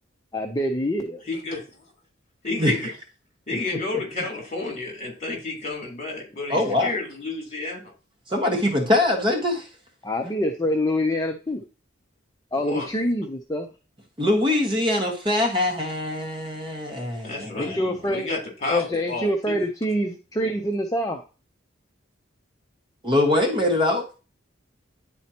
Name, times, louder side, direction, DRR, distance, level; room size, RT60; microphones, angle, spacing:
voice 1, 0.3-1.2 10.0-11.6 12.5-13.7 17.6-18.3 18.7-21.2, equal, 20° left, 4 dB, 0.6 m, -25 dB
voice 2, 1.3-1.6 2.4-2.9 3.5-7.9 12.6-12.9 17.2-17.8 18.1-19.6, left 3 dB, 35° left, 0 dB, 3.3 m, -31 dB
voice 3, 6.5-6.9 8.3-9.6 14.2-17.8 23.0-24.0, left 1 dB, 25° right, 1 dB, 1.5 m, -23 dB
10.5 x 4.3 x 2.9 m, 0.34 s
head